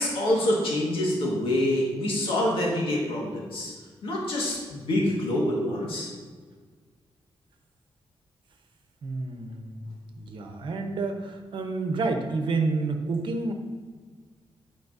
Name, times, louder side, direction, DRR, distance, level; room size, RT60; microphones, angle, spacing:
voice 1, 0.0-3.7 4.0-6.1, left 1 dB, 80° left, -3 dB, 1.6 m, -26 dB
voice 2, 9.0-9.9 10.2-13.5, right 3 dB, 65° right, 4 dB, 0.9 m, -29 dB
10.5 x 4.5 x 2.7 m, 1.5 s
wide cardioid pair, 130°, 9 cm